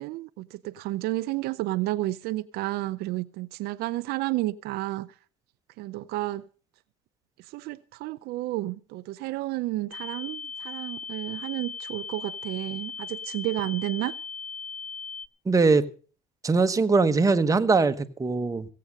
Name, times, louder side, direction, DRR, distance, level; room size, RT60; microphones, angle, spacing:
voice 1, 0.0-5.1 5.8-6.4 7.5-14.1, right 17 dB, 70° right, 0.6 m, -31 dB
sound 1, 9.9-15.3, left 5 dB, 55° left, 0.8 m, -38 dB
voice 2, 15.5-15.9 16.4-18.6, right 4 dB, 20° right, 1.1 m, -21 dB
16.5 x 8.6 x 6.4 m
supercardioid pair, 95°, 17 cm